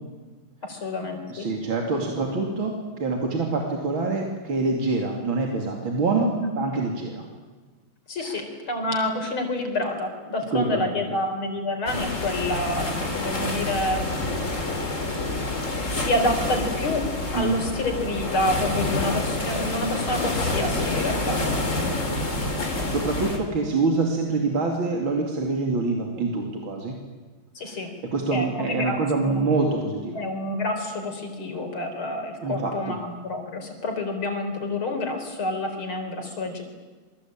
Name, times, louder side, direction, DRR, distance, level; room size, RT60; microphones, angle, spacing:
voice 1, 0.6-1.5 6.4-6.7 8.1-14.1 15.9-21.4 27.5-27.9 28.3-29.0 30.1-36.6, left 1 dB, 75° left, 5 dB, 5.0 m, -28 dB
voice 2, 1.3-7.2 8.2-8.4 10.5-10.9 17.3-17.6 21.8-22.2 22.9-26.9 27.7-27.8 28.1-30.2 32.4-33.0, right 3 dB, 70° right, 1 dB, 3.4 m, -26 dB
sound 1, 11.9-23.4, left 2 dB, 35° left, 3.8 m, -27 dB
27.5 x 23.0 x 8.9 m, 1.4 s
omnidirectional pair, 2.3 m